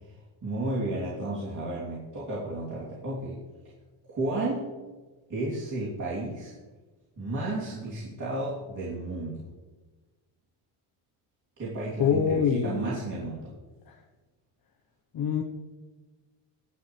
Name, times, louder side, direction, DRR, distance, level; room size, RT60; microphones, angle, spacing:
voice 1, 0.4-3.4 4.1-4.7 5.3-6.5 7.2-9.4 11.6-13.5, right 2 dB, 35° right, -7 dB, 3.2 m, -32 dB
voice 2, 12.0-12.9 15.1-15.4, left 7 dB, 45° left, 1 dB, 1.1 m, -25 dB
19.0 x 9.6 x 3.3 m, 1.3 s
cardioid pair, 110°, 49 cm